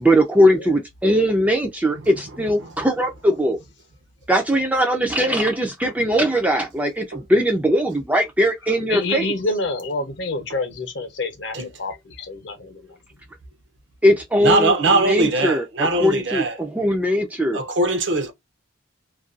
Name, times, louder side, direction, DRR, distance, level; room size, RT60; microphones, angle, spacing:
voice 1, 0.0-3.6 4.3-9.3 14.0-15.6 16.0-17.6, equal, 5° right, 0.3 m, -20 dB
voice 2, 8.9-13.0, left 2 dB, 55° left, 0.7 m, -28 dB
voice 3, 14.4-16.6 17.5-18.3, right 2 dB, 60° right, 0.5 m, -21 dB
2.4 x 2.2 x 2.4 m
head